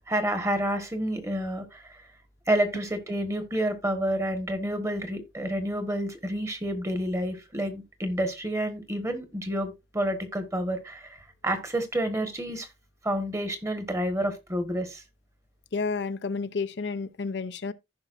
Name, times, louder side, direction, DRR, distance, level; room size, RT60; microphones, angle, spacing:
voice 1, 0.1-1.8 2.5-11.2 11.4-12.7 13.0-15.0, right 1 dB, 15° right, 1.5 m, -29 dB
voice 2, 15.7-17.7, left 4 dB, 75° left, 0.7 m, -31 dB
15.0 x 5.6 x 2.6 m
head